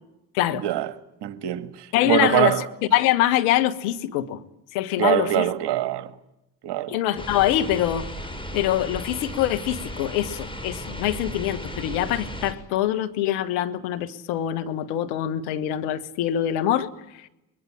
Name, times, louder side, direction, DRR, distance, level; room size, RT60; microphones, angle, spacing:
voice 1, 0.5-0.9 1.2-2.7 5.0-6.1 6.6-7.0, right 13 dB, 60° right, 1.8 m, -24 dB
voice 2, 1.9-2.5 2.9-4.4 4.7-5.5 6.9-8.1 8.5-17.3, left 12 dB, 75° left, 1.6 m, -24 dB
sound 1, 7.2-12.5, left 1 dB, 10° left, 6.2 m, -35 dB
24.5 x 22.0 x 8.8 m
hypercardioid pair, 55°, 46 cm